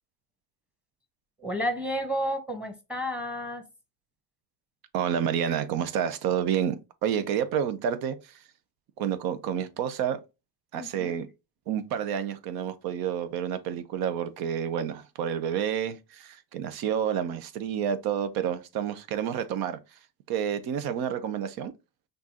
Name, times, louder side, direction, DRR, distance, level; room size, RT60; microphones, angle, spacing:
voice 1, 1.4-3.7 10.7-11.1, equal, 5° right, 1.2 m, -31 dB
voice 2, 4.9-8.4 9.0-10.2 10.7-11.3 11.7-19.8 20.3-21.7, right 8 dB, 70° right, 0.8 m, -29 dB
6.0 x 2.6 x 2.9 m
cardioid pair, 110°, 38 cm